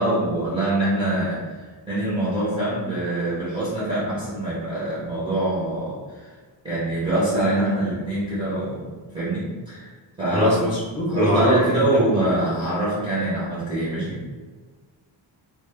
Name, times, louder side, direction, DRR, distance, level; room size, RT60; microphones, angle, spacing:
voice 1, 0.0-6.3 6.6-10.6 11.1-14.2, right 1 dB, 10° right, -10 dB, 0.6 m, -24 dB
voice 2, 10.3-12.0, left 1 dB, 35° left, -5 dB, 0.8 m, -22 dB
2.2 x 2.0 x 3.2 m, 1.4 s
wide cardioid pair, 175°, 46 cm